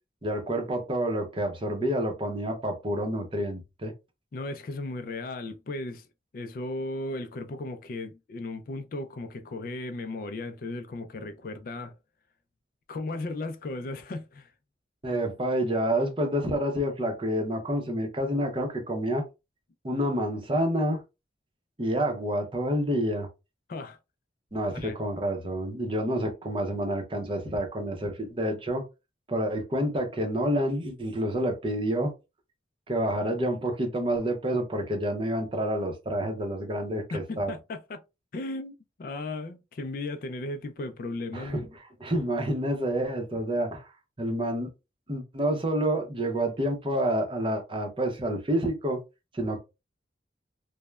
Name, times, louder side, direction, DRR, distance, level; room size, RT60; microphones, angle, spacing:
voice 1, 0.2-3.9 15.0-19.2 19.8-21.0 21.8-23.3 24.5-28.8 29.3-32.1 32.9-37.5 41.3-41.7 42.0-43.9 44.2-44.7 45.1-49.0 49.3-49.6, right 1 dB, 30° right, 0.6 m, -28 dB
voice 2, 4.3-6.1 6.3-12.0 12.9-14.5 23.7-24.0 24.7-25.0 37.1-38.0 38.3-41.6, left 2 dB, 50° left, 0.4 m, -36 dB
3.1 x 2.1 x 2.2 m
head